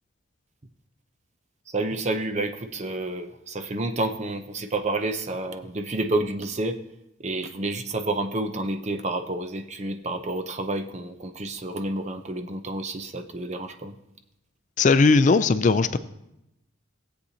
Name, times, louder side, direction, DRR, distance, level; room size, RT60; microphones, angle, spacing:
voice 1, 1.7-6.8 7.2-14.0, right 2 dB, 35° right, 7 dB, 0.6 m, -29 dB
voice 2, 14.8-16.0, left 4 dB, 40° left, 13 dB, 0.3 m, -18 dB
16.5 x 8.2 x 2.8 m, 0.86 s
head